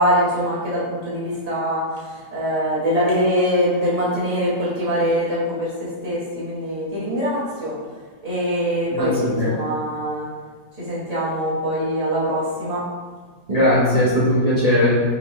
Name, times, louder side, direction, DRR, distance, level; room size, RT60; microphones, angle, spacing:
voice 1, 0.0-7.7 8.2-10.3 10.8-12.8, equal, 25° right, -9 dB, 1.3 m, -23 dB
voice 2, 8.9-9.6 13.5-15.0, left 1 dB, 45° right, -9 dB, 0.5 m, -18 dB
4.1 x 3.7 x 3.0 m, 1.5 s
omnidirectional pair, 1.9 m